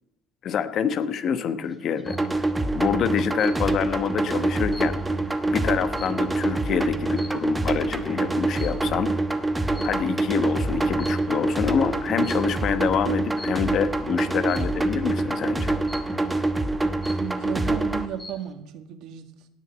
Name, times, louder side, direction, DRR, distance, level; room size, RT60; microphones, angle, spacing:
voice 1, 0.4-2.2 2.7-5.0 5.5-9.1 9.8-15.8, left 7 dB, 45° left, 12 dB, 1.0 m, -26 dB
sound 1, 1.7-2.3 3.4-3.9 4.3-6.6 7.1-7.6 8.6-9.0 9.8-10.4 10.8-11.5 12.2-12.6 13.4-13.8 14.5-14.9 15.9-16.4 16.8-16.9 17.0-17.6 18.0-18.5, left 1 dB, 10° left, 1.6 m, -44 dB
sound 2, 2.1-18.1, right 2 dB, 10° right, 1.0 m, -25 dB
voice 2, 17.1-19.5, right 9 dB, 65° right, 9 dB, 1.5 m, -35 dB
17.5 x 6.2 x 8.1 m, 0.90 s
cardioid pair, 120°, 0 cm